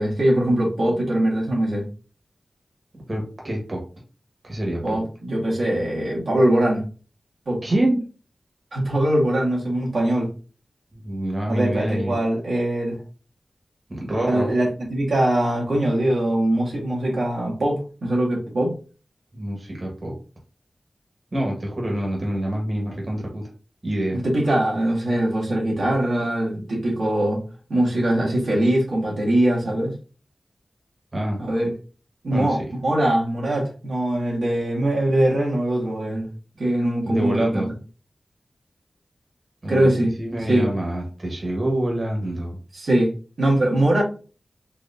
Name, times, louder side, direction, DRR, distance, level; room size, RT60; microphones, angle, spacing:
voice 1, 0.0-1.8 4.8-6.8 7.5-7.6 8.7-10.3 11.5-13.0 14.3-18.7 24.1-27.4 27.7-29.9 31.4-31.7 32.2-36.3 36.6-37.6 39.7-40.1 40.5-40.7 42.7-43.1 43.4-44.0, right 1 dB, 85° right, -5 dB, 1.9 m, -22 dB
voice 2, 3.1-3.8 4.4-5.0 7.6-8.0 10.9-12.2 13.9-14.5 19.3-20.1 21.3-23.5 23.8-24.2 31.1-31.4 32.3-32.6 37.0-37.7 39.6-42.6, right 1 dB, 40° right, -1 dB, 1.5 m, -26 dB
4.5 x 3.0 x 2.7 m, 0.36 s
wide cardioid pair, 80°, 0 cm